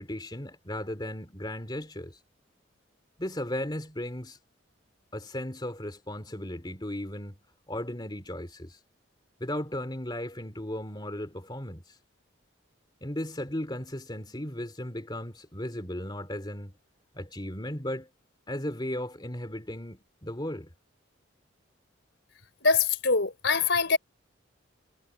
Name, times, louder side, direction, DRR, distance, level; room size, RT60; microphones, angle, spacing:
voice 1, 0.0-2.2 3.2-4.4 5.1-7.4 7.7-8.8 9.4-12.0 13.0-16.7 17.1-18.1 18.5-20.7, left 1 dB, 20° left, 2.8 m, -36 dB
voice 2, 22.6-24.0, left 4 dB, 60° left, 4.8 m, -24 dB
head